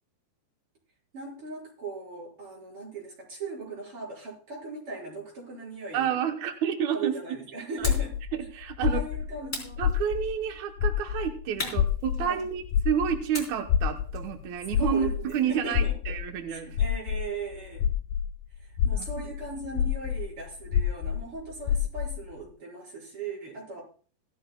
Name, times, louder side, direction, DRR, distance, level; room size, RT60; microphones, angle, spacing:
voice 1, 1.1-6.1 6.9-8.1 8.8-9.8 11.6-11.8 12.2-12.4 14.8-16.0 16.5-17.9 18.6-23.8, right 4 dB, 30° right, -5 dB, 6.0 m, -38 dB
voice 2, 5.9-7.1 7.8-7.9 8.3-9.0 9.8-16.8 18.9-19.1, right 8 dB, 85° right, 3 dB, 1.6 m, -30 dB
sound 1, 7.8-10.5 10.8-18.3 18.7-22.2, left 9 dB, 80° left, 1.9 m, -28 dB
sound 2, 7.8-8.2 9.5-10.4 11.6-12.7 13.3-15.6, left 2 dB, 15° left, 3.7 m, -39 dB
17.5 x 12.5 x 2.3 m, 0.42 s
omnidirectional pair, 4.8 m